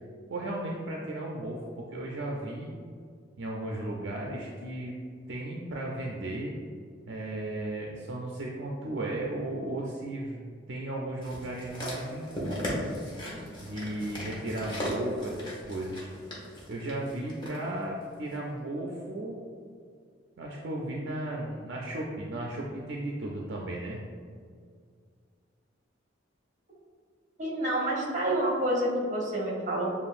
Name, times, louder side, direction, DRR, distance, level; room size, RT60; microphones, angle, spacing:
voice 1, 0.3-2.7 3.4-5.0 5.3-6.5 7.1-12.8 13.6-16.1 16.7-19.4 20.4-24.0, right 1 dB, 65° right, -2 dB, 0.4 m, -35 dB
sound 1, 11.2-17.6 18.3-18.4, left 1 dB, 25° left, 0.9 m, -37 dB
voice 2, 27.4-29.8, right 1 dB, 40° right, -3 dB, 1.0 m, -28 dB
7.0 x 2.4 x 2.5 m, 2.1 s
head